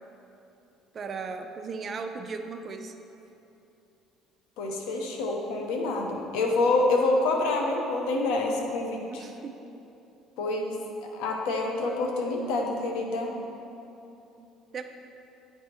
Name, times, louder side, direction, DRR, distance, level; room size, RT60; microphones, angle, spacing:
voice 1, 0.9-2.9 9.1-9.5 14.4-14.5 14.7-14.8, right 4 dB, 35° right, 6 dB, 0.4 m, -36 dB
voice 2, 4.6-9.2 10.4-10.8 11.1-13.4, left 2 dB, 90° left, 1 dB, 0.9 m, -27 dB
9.3 x 3.4 x 4.4 m, 2.8 s
cardioid pair, 135°, 0 cm